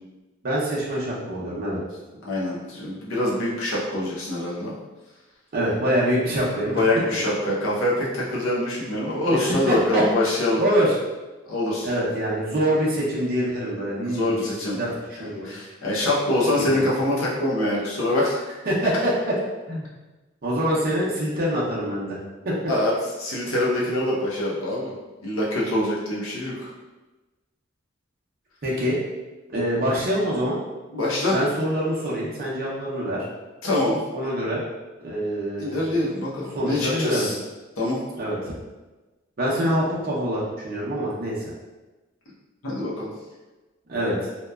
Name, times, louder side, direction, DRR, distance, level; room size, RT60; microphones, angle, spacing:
voice 1, 0.4-1.8 5.5-6.8 9.7-10.0 10.6-10.9 11.8-14.4 14.8-15.5 16.6-16.8 18.7-19.3 19.7-19.9 20.4-22.2 22.4-22.6 28.6-29.0 29.5-30.6 31.3-33.2 34.1-34.7 35.0-36.0 36.6-37.3 38.1-38.5 39.4-41.4 43.9-44.1, equal, 45° right, -6 dB, 0.6 m, -25 dB
voice 2, 2.2-4.7 6.7-10.6 11.5-11.9 14.0-14.8 15.2-18.4 22.7-22.9 23.2-24.9 25.2-26.7 30.9-31.4 33.6-34.0 35.6-37.3 37.8-38.0 42.6-43.1, left 1 dB, 80° left, -5 dB, 0.7 m, -24 dB
2.8 x 2.2 x 2.2 m, 1.2 s
head